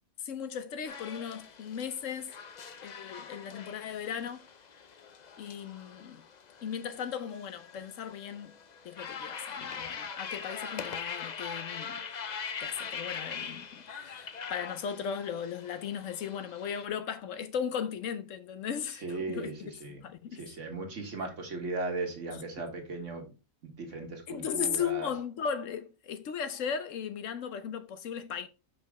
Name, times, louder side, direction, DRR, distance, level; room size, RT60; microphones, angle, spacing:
voice 1, 0.2-2.3 2.8-4.4 5.4-6.2 6.6-8.5 8.8-12.0 12.6-19.0 19.3-19.5 20.0-20.4 24.3-28.5, left 7 dB, 70° left, 1.1 m, -36 dB
sound 1, 0.9-16.8, left 6 dB, 50° left, 0.5 m, -42 dB
voice 2, 18.9-20.0 20.3-23.2 23.6-25.1, right 3 dB, 65° right, 1.8 m, -37 dB
5.7 x 5.2 x 3.6 m
omnidirectional pair, 1.4 m